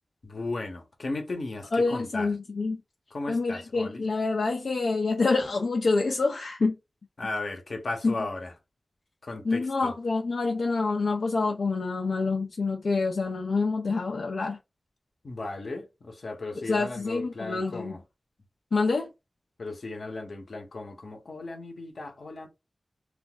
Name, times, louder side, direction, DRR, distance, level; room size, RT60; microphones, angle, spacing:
voice 1, 0.2-2.3 3.1-4.0 7.2-8.5 9.2-9.9 15.2-18.0 19.6-22.5, left 2 dB, 70° left, 0.8 m, -36 dB
voice 2, 1.7-2.8 3.3-6.8 8.0-8.1 9.4-14.6 16.6-17.9 18.7-19.1, left 3 dB, 85° left, 0.4 m, -27 dB
2.5 x 2.3 x 3.8 m
wide cardioid pair, 85°, 0 cm